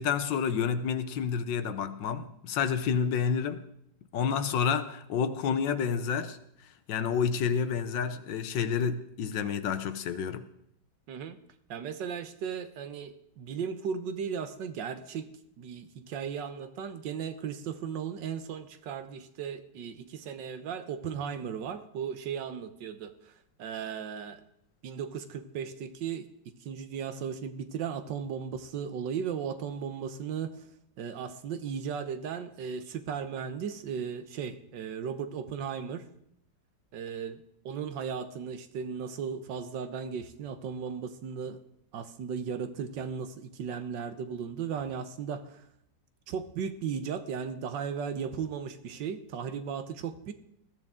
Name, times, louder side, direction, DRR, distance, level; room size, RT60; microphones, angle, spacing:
voice 1, 0.0-3.6 4.1-6.4 6.9-10.5, left 6 dB, 75° left, 1.5 m, -29 dB
voice 2, 11.1-11.4 11.7-15.3 15.6-23.3 23.6-24.4 24.8-30.7 31.0-36.0 36.9-41.6 41.9-45.6 46.3-50.3, right 7 dB, 70° right, 1.6 m, -36 dB
19.5 x 14.5 x 3.7 m
omnidirectional pair, 2.0 m